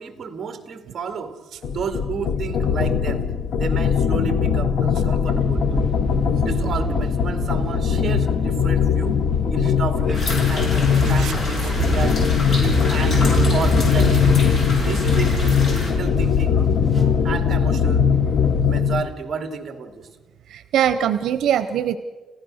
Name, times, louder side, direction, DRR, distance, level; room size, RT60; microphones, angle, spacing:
voice 1, 0.0-1.3 1.7-3.2 3.6-5.9 6.4-9.2 9.5-12.2 12.6-14.3 14.8-16.6 17.2-18.1 18.6-20.1, right 5 dB, 35° right, 7 dB, 2.1 m, -31 dB
sound 1, 1.6-19.1, left 7 dB, 70° left, 1.0 m, -20 dB
sound 2, 5.3-18.6, right 2 dB, 5° left, 2.0 m, -31 dB
sound 3, 10.1-15.9, left 1 dB, 45° left, 6.3 m, -24 dB
voice 2, 20.5-22.0, right 9 dB, 80° right, 13 dB, 0.8 m, -22 dB
30.0 x 15.5 x 6.4 m, 1.3 s
cardioid pair, 170°, 0 cm